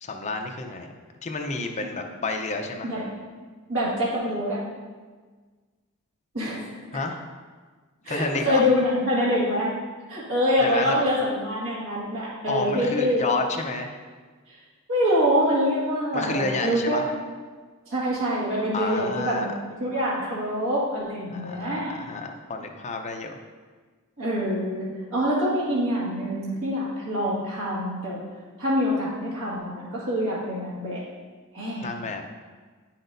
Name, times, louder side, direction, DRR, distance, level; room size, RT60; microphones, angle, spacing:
voice 1, 0.0-0.9 1.2-2.9 6.9-7.2 8.1-8.6 10.6-11.0 12.5-14.0 16.1-17.1 18.7-19.5 21.3-23.4 31.8-32.2, left 3 dB, 30° left, 3 dB, 0.6 m, -30 dB
voice 2, 3.7-4.6 6.3-6.6 8.1-9.7 10.1-13.2 14.5-14.6 14.9-17.0 17.9-19.5 19.8-21.9 24.2-28.2 28.6-31.0 31.5-31.9, equal, 65° right, -7 dB, 1.9 m, -25 dB
8.9 x 5.9 x 2.6 m, 1.4 s
head